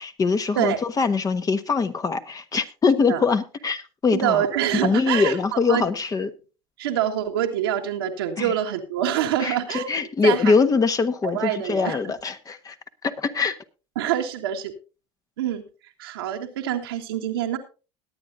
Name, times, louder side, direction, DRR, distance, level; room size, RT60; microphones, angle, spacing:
voice 1, 0.0-4.4 4.7-6.3 8.4-8.5 9.4-12.7 13.0-13.6, left 4 dB, 30° left, 1.2 m, -23 dB
voice 2, 4.1-5.8 6.8-9.9 10.2-10.5 11.3-12.0 14.0-14.7 15.4-15.6 16.0-17.6, right 10 dB, 90° right, 1.6 m, -25 dB
21.0 x 8.9 x 2.7 m
hypercardioid pair, 80°, 12 cm